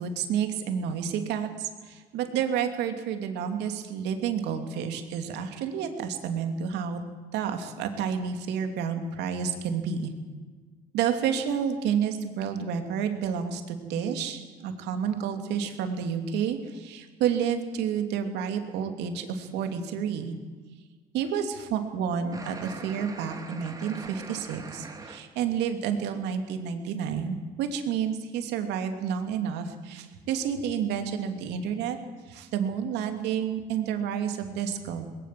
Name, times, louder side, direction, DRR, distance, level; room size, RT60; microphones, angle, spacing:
voice 1, 0.0-7.0 7.3-10.1 10.9-20.3 21.1-32.0 32.3-35.1, right 7 dB, 85° right, 6 dB, 2.8 m, -30 dB
sound 1, 22.3-25.2, right 3 dB, 20° right, 2.7 m, -42 dB
21.0 x 19.0 x 7.7 m, 1.4 s
cardioid pair, 110°, 17 cm